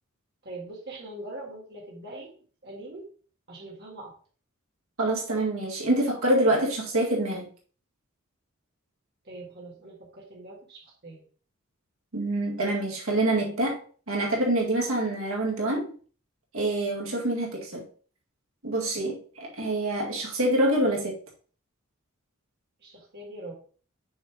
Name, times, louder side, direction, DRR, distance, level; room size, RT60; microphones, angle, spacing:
voice 1, 0.4-2.3 2.6-3.0 3.5-4.1 9.2-11.2 22.8-23.5, right 2 dB, 50° right, 1.7 m, -42 dB
voice 2, 5.0-7.5 12.1-13.8 14.1-15.9 16.5-17.8 18.6-21.2, right 1 dB, 70° right, 2.0 m, -26 dB
6.3 x 5.4 x 3.2 m
head